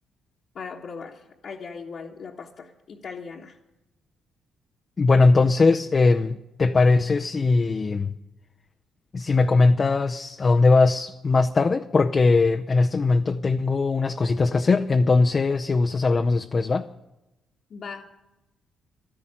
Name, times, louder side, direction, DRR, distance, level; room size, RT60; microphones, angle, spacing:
voice 1, 0.5-3.6 17.7-18.2, left 5 dB, 55° left, 1.3 m, -39 dB
voice 2, 5.0-8.1 9.1-16.9, left 3 dB, 35° left, 0.6 m, -20 dB
12.5 x 11.0 x 8.7 m
cardioid pair, 90°, 0 cm